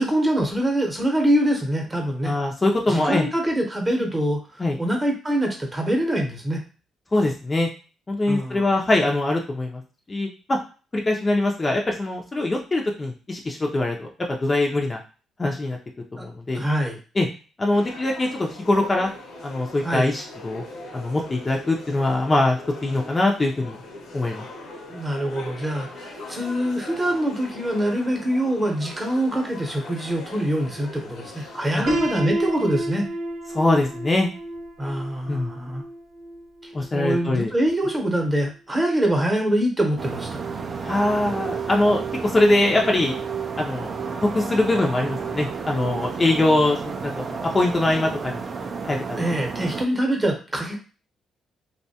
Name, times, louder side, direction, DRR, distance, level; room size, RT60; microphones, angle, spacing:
voice 1, 0.0-2.3 2.9-6.6 8.3-8.8 16.2-16.3 16.5-17.0 19.8-20.1 24.9-33.1 34.8-35.8 36.6-40.4 49.2-50.8, right 1 dB, 15° right, 1 dB, 0.8 m, -24 dB
voice 2, 2.2-3.3 4.6-4.8 7.1-7.7 8.1-9.8 10.1-10.6 10.9-15.0 15.4-15.8 16.2-16.6 17.2-17.3 17.6-19.1 19.4-20.6 20.9-23.8 24.1-24.5 31.7-31.8 33.5-34.3 35.3-35.5 36.7-37.5 40.8-43.2 43.6-43.9 44.2-47.2 47.5-48.4 48.8-49.2, left 2 dB, 25° left, 0 dB, 0.5 m, -22 dB
sound 1, 17.7-31.9, left 2 dB, 80° left, 0.8 m, -41 dB
Piano, 31.9-37.7, right 1 dB, 70° right, 0.8 m, -31 dB
sound 2, 40.0-49.9, right 5 dB, 45° right, 0.4 m, -31 dB
2.6 x 2.2 x 2.7 m, 0.35 s
cardioid pair, 90°, 0 cm